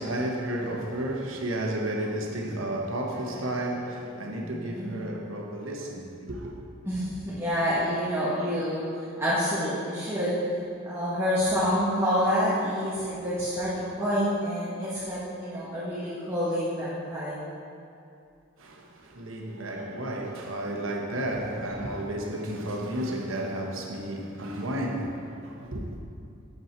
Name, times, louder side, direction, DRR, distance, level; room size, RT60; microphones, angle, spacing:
voice 1, 0.0-6.6 18.6-26.0, right 1 dB, 85° right, 1.0 m, -32 dB
voice 2, 4.4-4.9 6.9-8.8 9.2-10.3 10.8-17.4, equal, 15° right, 1.2 m, -28 dB
7.4 x 5.7 x 4.4 m
head